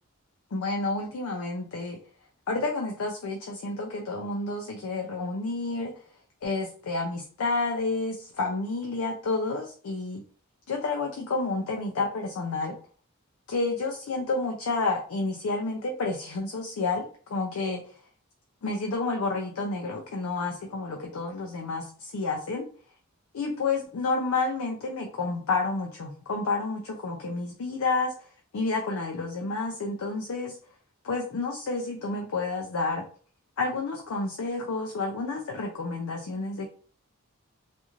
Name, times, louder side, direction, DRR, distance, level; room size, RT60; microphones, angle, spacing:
voice 1, 0.5-2.0 2.5-5.9 6.4-10.2 10.7-12.8 13.5-17.8 18.6-22.6 23.3-28.1 28.5-30.6 31.0-33.0 33.6-36.7, left 3 dB, 75° left, 1 dB, 0.4 m, -30 dB
2.5 x 2.4 x 2.9 m, 0.44 s
head